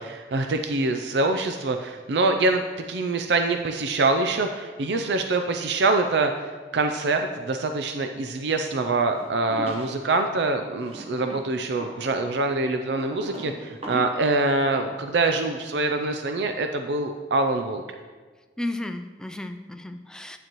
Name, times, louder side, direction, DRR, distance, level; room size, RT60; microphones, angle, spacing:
voice 1, 0.0-2.6 2.9-17.8, right 3 dB, 75° right, 6 dB, 0.5 m, -25 dB
sound 1, 9.2-10.2 10.8-14.3, right 2 dB, 35° right, 0.9 m, -40 dB
voice 2, 18.6-20.4, left 1 dB, 5° left, 7 dB, 0.4 m, -33 dB
9.1 x 8.7 x 3.0 m, 1.4 s
head